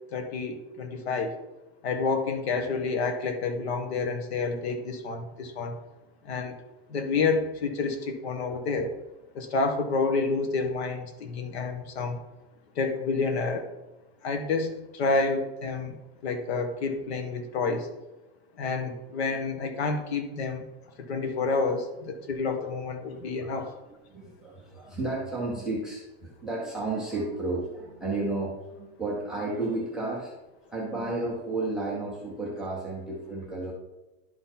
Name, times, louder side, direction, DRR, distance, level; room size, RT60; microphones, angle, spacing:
voice 1, 0.1-1.3 1.8-5.7 6.2-6.5 6.9-8.9 9.3-12.2 12.7-13.7 14.2-16.0 16.2-17.9 18.6-20.7 21.0-23.7, left 4 dB, 80° left, 6 dB, 1.5 m, -29 dB
voice 2, 23.0-23.7 24.1-30.3 30.7-33.7, right 2 dB, ahead, -4 dB, 0.3 m, -32 dB
11.0 x 3.9 x 4.3 m, 1.0 s
supercardioid pair, 180°, 32 cm